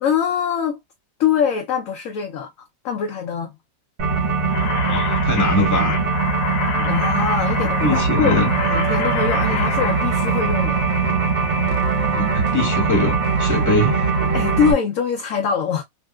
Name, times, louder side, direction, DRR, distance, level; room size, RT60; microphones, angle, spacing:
voice 1, 0.0-0.8 1.2-2.5 2.8-3.5 6.7-10.8 14.3-15.8, left 7 dB, 65° left, 0.9 m, -23 dB
sound 1, 4.0-14.7, right 4 dB, 55° right, 0.9 m, -21 dB
sound 2, 4.5-10.4, left 8 dB, 85° left, 1.3 m, -29 dB
voice 2, 4.7-6.0 7.8-8.5 12.1-14.1, left 2 dB, 10° left, 1.1 m, -22 dB
3.5 x 2.6 x 2.2 m
omnidirectional pair, 1.8 m